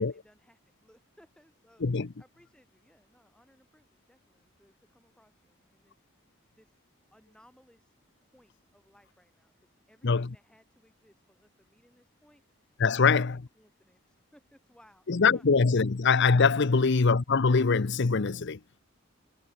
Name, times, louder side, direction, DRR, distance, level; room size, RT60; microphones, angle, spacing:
voice 1, 0.0-6.8 7.1-7.9 8.2-15.5 16.6-16.9, equal, 5° left, 7.4 m, -63 dB
voice 2, 12.8-13.3 15.1-18.6, left 4 dB, 55° left, 0.7 m, -23 dB
head